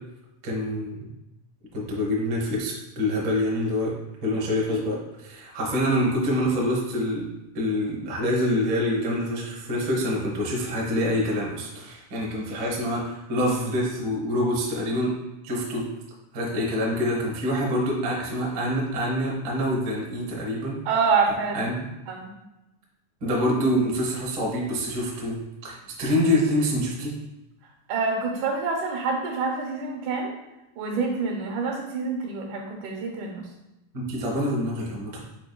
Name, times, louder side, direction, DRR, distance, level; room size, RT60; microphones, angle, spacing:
voice 1, 0.4-1.1 1.7-3.9 4.2-7.3 7.5-15.1 15.4-15.8 16.3-20.8 21.5-21.8 23.2-27.2 33.9-35.2, equal, 60° right, -3 dB, 1.2 m, -26 dB
voice 2, 20.9-21.7 22.1-22.3 27.9-30.3 30.8-33.5, right 4 dB, 75° right, 0 dB, 2.3 m, -26 dB
5.2 x 4.4 x 2.2 m, 0.95 s
omnidirectional pair, 3.5 m